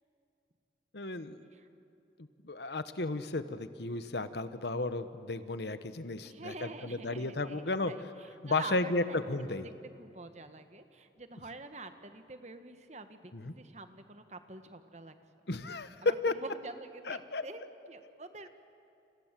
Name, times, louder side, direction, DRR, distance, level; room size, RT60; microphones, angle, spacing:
voice 1, 0.9-1.4 2.4-7.9 8.4-9.7 13.3-13.5 15.5-16.0 16.2-16.3 17.1-17.5, left 2 dB, 70° left, 11 dB, 1.2 m, -34 dB
voice 2, 6.2-9.7 10.0-15.1 16.0-17.6 17.9-18.5, right 3 dB, 40° right, 9 dB, 1.4 m, -46 dB
29.5 x 27.0 x 7.6 m, 2.6 s
head